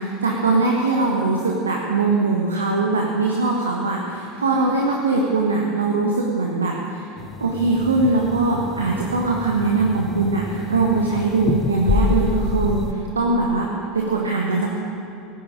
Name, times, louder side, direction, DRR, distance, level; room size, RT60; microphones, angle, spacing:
voice 1, 0.0-7.1 7.4-13.7 13.9-14.8, right 3 dB, 85° right, -1 dB, 1.5 m, -21 dB
sound 1, 7.2-12.9, left 4 dB, 30° left, 0.8 m, -27 dB
16.5 x 9.3 x 8.7 m, 2.8 s
figure-of-eight pair, 80°, 0 cm